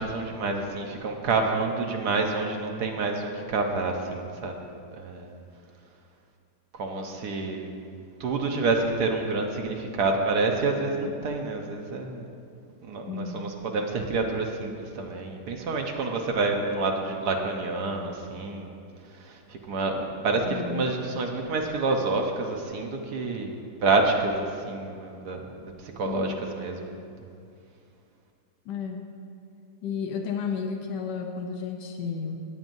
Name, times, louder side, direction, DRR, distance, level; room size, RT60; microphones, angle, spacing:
voice 1, 0.0-4.7 4.9-5.4 6.7-7.7 8.2-12.3 12.8-18.8 19.1-23.5 23.8-26.9, right 3 dB, 65° right, 2 dB, 1.5 m, -28 dB
voice 2, 13.1-13.5 20.5-20.8 26.0-26.4 28.6-29.1 29.8-32.4, left 6 dB, 75° left, 3 dB, 1.4 m, -32 dB
17.5 x 9.1 x 2.7 m, 2.4 s
omnidirectional pair, 1.9 m